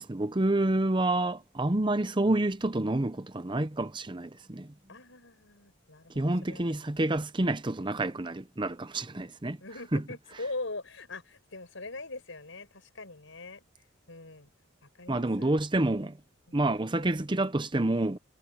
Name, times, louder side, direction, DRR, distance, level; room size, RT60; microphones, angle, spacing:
voice 1, 0.0-4.7 6.2-9.6 9.9-10.0 15.1-16.2 16.5-18.2, right 2 dB, 25° right, 0.7 m, -28 dB
voice 2, 4.9-6.9 9.6-13.6 14.1-14.5 14.8-15.6 16.5-16.6, left 2 dB, 70° left, 5.7 m, -42 dB
head